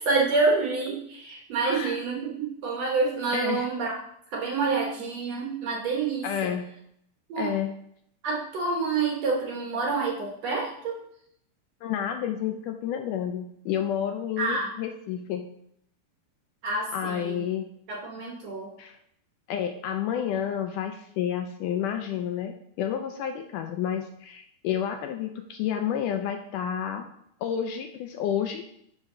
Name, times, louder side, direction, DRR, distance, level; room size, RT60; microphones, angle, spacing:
voice 1, 0.0-4.0 4.3-6.5 7.3-7.5 8.2-11.0 14.4-14.7 16.6-17.4 17.9-18.7, right 4 dB, 60° right, -1 dB, 1.9 m, -27 dB
voice 2, 1.7-2.0 3.3-3.7 6.2-6.7 7.4-7.8 11.8-15.5 16.9-17.7 18.8-19.0 19.5-27.1 27.4-28.7, left 9 dB, 80° left, 6 dB, 1.9 m, -30 dB
11.0 x 5.4 x 3.8 m, 0.72 s
omnidirectional pair, 4.2 m